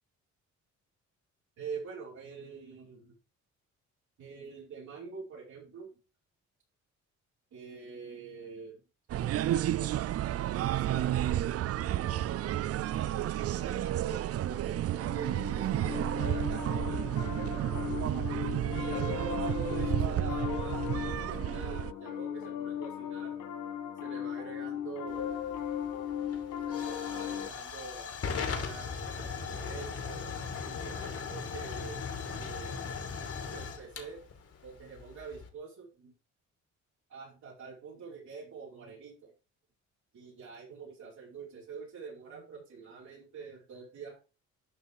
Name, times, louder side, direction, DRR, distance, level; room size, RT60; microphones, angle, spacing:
voice 1, 1.6-3.1 4.2-5.9 7.5-8.8 9.1-11.5 11.9-17.9 18.7-23.3 24.0-25.4 26.7-30.3 30.7-32.1 32.4-32.8 33.5-34.2 34.6-36.1 37.1-39.3 40.1-44.2, right 5 dB, 70° right, -6 dB, 5.3 m, -45 dB
sound 1, 9.1-21.9, right 12 dB, 55° right, 0.4 m, -31 dB
Piano, 15.0-27.5, left 9 dB, 75° left, 1.6 m, -37 dB
Hiss / Fire / Tick, 25.1-35.5, left 5 dB, 50° left, 2.8 m, -39 dB
11.5 x 5.5 x 4.9 m, 0.33 s
cardioid pair, 90°, 30 cm